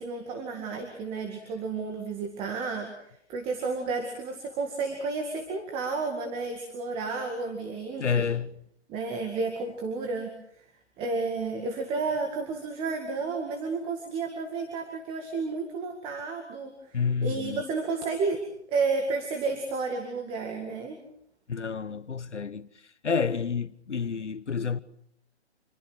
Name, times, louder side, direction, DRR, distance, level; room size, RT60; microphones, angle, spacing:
voice 1, 0.0-2.9 3.3-8.2 8.9-10.3 11.0-18.4 18.7-21.0, right 4 dB, 15° right, 2.1 m, -31 dB
voice 2, 8.0-8.6 16.9-17.6 21.5-24.8, left 6 dB, 85° left, 1.3 m, -29 dB
27.0 x 22.0 x 6.3 m
hypercardioid pair, 150°, 34 cm